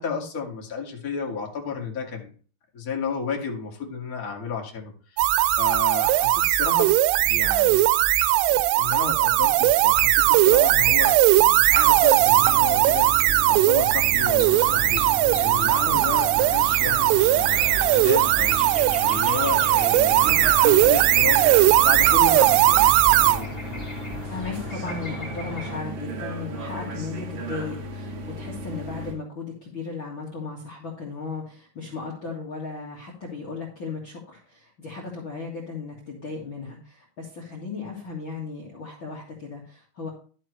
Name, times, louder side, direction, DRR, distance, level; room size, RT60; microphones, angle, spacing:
voice 1, 0.0-2.3 2.7-5.3 5.6-7.8 8.5-18.6 19.0-21.5 21.8-23.5, left 5 dB, 50° left, -1 dB, 1.0 m, -32 dB
sound 1, 5.2-23.4, right 15 dB, 90° right, 3.3 m, -19 dB
sound 2, 12.2-29.1, equal, 50° right, 2.8 m, -36 dB
sound 3, 14.2-25.8, left 1 dB, 15° left, 2.0 m, -38 dB
voice 2, 24.3-40.1, left 4 dB, 75° left, -3 dB, 1.1 m, -36 dB
12.0 x 7.4 x 3.3 m, 0.41 s
omnidirectional pair, 5.7 m